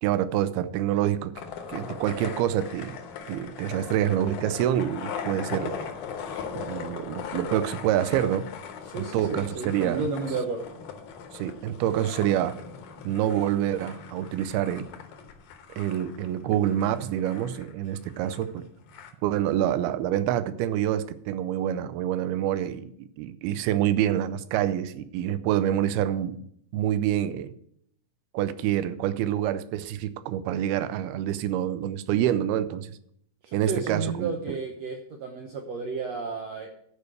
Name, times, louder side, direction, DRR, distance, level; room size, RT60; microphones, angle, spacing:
voice 1, 0.0-1.3 1.7-3.0 3.3-5.8 6.5-8.5 9.0-10.0 11.3-12.6 13.0-14.9 15.8-18.7 19.2-26.4 26.7-27.5 28.3-32.9 33.5-34.6, right 11 dB, 90° right, 14 dB, 2.6 m, -27 dB
sound 1, 1.3-19.1, left 7 dB, 65° left, 2.3 m, -39 dB
voice 2, 8.9-10.8 33.4-36.7, right 4 dB, 75° right, 2 dB, 1.5 m, -32 dB
11.0 x 5.1 x 8.0 m, 0.69 s
omnidirectional pair, 4.3 m